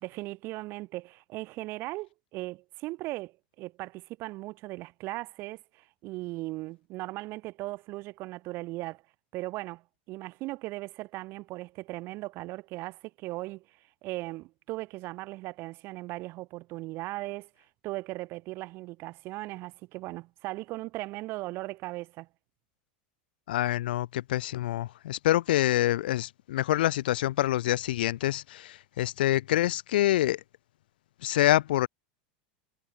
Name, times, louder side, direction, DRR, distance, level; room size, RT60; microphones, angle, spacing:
voice 1, 0.0-9.0 9.3-9.8 10.1-13.6 14.0-17.5 17.8-22.3, right 20 dB, 50° right, 1.3 m, -38 dB
voice 2, 23.5-30.4 31.2-31.9, left 14 dB, 80° left, 0.5 m, -26 dB
supercardioid pair, 110°, 5 cm